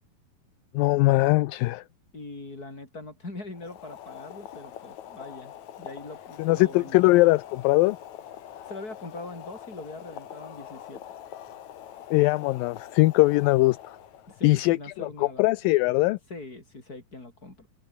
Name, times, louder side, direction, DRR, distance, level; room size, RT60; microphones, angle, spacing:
voice 1, 0.7-1.8 6.4-8.0 12.1-13.8 14.4-16.2, left 20 dB, 80° left, 2.3 m, -21 dB
voice 2, 2.1-7.1 8.7-11.0 14.3-15.5 16.3-17.7, left 2 dB, 25° left, 6.8 m, -42 dB
Boiling, 3.5-14.5, left 10 dB, 60° left, 2.6 m, -44 dB
omnidirectional pair, 4.2 m